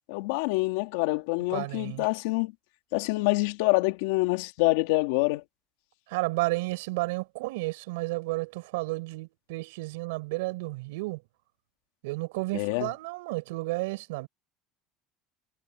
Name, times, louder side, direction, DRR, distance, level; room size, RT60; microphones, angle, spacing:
voice 1, 0.1-2.5 2.9-5.4 12.5-12.9, left 22 dB, 85° left, 3.2 m, -26 dB
voice 2, 1.5-2.1 6.1-11.2 12.0-14.3, right 23 dB, 90° right, 6.2 m, -32 dB
supercardioid pair, 125°, 0 cm